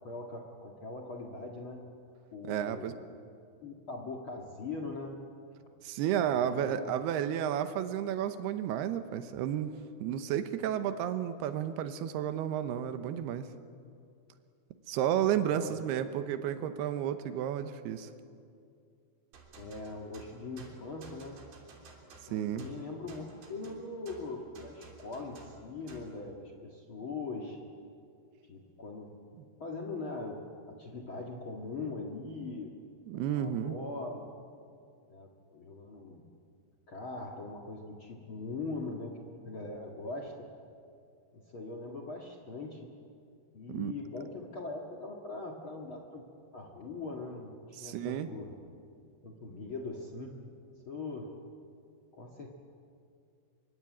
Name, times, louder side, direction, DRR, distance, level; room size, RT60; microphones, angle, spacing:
voice 1, 0.0-1.8 2.3-2.9 3.6-5.2 6.3-6.9 15.5-15.7 19.6-21.4 22.3-27.6 28.4-29.2 29.6-30.4 30.7-32.7 33.1-34.3 35.1-36.2 36.9-40.3 41.3-42.8 43.5-46.2 46.5-47.5 47.8-48.5 49.2-50.4 50.8-51.3 52.1-52.5, left 3 dB, 75° left, 2 dB, 1.1 m, -41 dB
voice 2, 2.5-2.9 5.8-9.7 10.0-13.5 14.9-18.1 22.3-22.7 33.1-33.8 43.7-43.9 47.8-48.3, right 10 dB, 75° right, 10 dB, 2.5 m, -32 dB
sound 1, 19.3-26.2, right 4 dB, 55° right, 4.8 m, -54 dB
25.5 x 24.0 x 8.7 m, 2.4 s
omnidirectional pair, 5.7 m